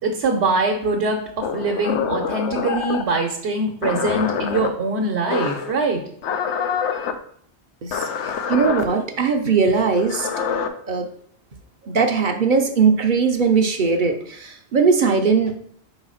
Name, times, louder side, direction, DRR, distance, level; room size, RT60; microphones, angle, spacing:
voice 1, 0.0-6.0, right 3 dB, 70° right, 2 dB, 1.1 m, -23 dB
sound 1, 1.4-3.1 3.8-4.7 5.3-5.7 6.2-7.1 7.9-8.8 9.9-10.7, left 7 dB, 85° left, 0.9 m, -25 dB
voice 2, 7.8-10.3 10.9-11.1 11.8-15.6, right 5 dB, 55° right, 5 dB, 0.7 m, -19 dB
4.6 x 4.0 x 5.6 m, 0.63 s
omnidirectional pair, 1.1 m